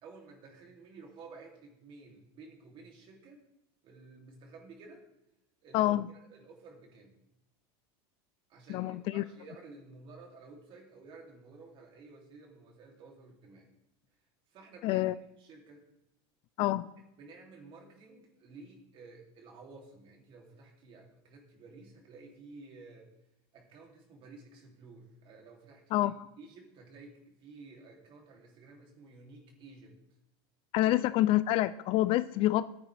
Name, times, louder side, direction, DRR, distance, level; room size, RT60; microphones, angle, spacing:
voice 1, 0.0-3.4 3.8-5.1 5.6-5.9 6.3-7.2 8.5-13.7 14.5-15.0 15.4-15.8 17.2-23.1 23.5-26.1 26.4-30.0 30.8-30.9, right 3 dB, 40° right, 1 dB, 3.0 m, -53 dB
voice 2, 5.7-6.1 8.7-9.2 14.8-15.2 16.6-16.9 25.9-26.1 30.7-32.7, left 15 dB, 45° left, 16 dB, 0.4 m, -27 dB
14.5 x 9.7 x 3.4 m, 0.87 s
supercardioid pair, 150°, 13 cm